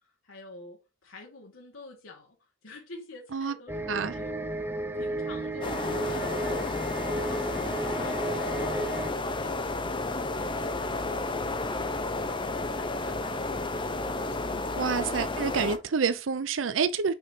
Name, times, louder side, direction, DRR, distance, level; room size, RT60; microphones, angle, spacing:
voice 1, 0.2-14.8, left 2 dB, 85° left, 1.8 m, -48 dB
sound 1, 3.7-9.1, right 1 dB, 10° right, 0.6 m, -34 dB
sound 2, 5.6-15.8, left 2 dB, 25° left, 0.8 m, -31 dB
voice 2, 14.8-17.1, right 5 dB, 70° right, 0.5 m, -28 dB
6.2 x 5.3 x 2.8 m
head